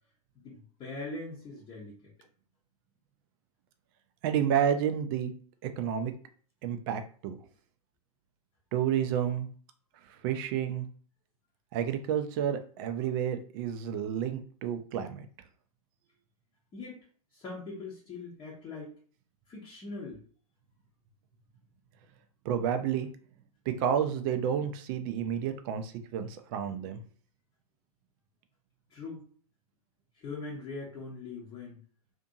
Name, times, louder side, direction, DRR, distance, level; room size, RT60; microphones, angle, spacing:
voice 1, 0.3-2.0 16.7-17.1 17.3-18.9 19.5-20.2 28.9-29.3 30.2-31.8, left 3 dB, 20° left, -5 dB, 0.8 m, -41 dB
voice 2, 4.2-5.3 5.6-6.1 6.6-7.4 8.7-9.5 10.2-10.9 11.7-15.3 22.5-23.1 23.7-27.0, right 8 dB, 35° right, 8 dB, 0.4 m, -30 dB
2.6 x 2.6 x 2.6 m, 0.44 s
hypercardioid pair, 110°, 19 cm